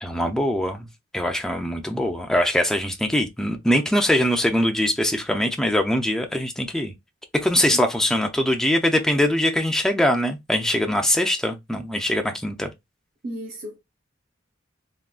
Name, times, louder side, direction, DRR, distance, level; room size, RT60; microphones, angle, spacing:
voice 1, 0.0-0.9 1.1-6.9 7.3-12.7, left 1 dB, 5° left, 0.4 m, -22 dB
voice 2, 13.2-13.8, right 1 dB, 45° right, 0.7 m, -34 dB
3.6 x 2.3 x 2.4 m
head